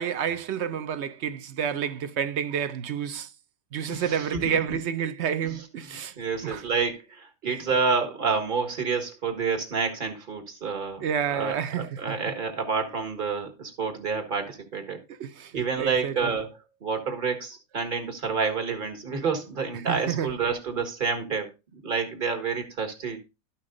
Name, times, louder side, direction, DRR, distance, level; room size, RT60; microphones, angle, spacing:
voice 1, 0.0-3.3 3.7-6.1 6.4-6.6 7.4-7.5 11.0-12.2 15.2-16.3 19.7-20.3, right 8 dB, 60° right, 0.9 m, -29 dB
voice 2, 3.9-4.6 5.4-5.5 6.2-11.0 11.3-15.0 15.5-16.5 16.8-23.2, right 5 dB, 35° right, 1.8 m, -29 dB
12.5 x 5.7 x 3.8 m
omnidirectional pair, 1.5 m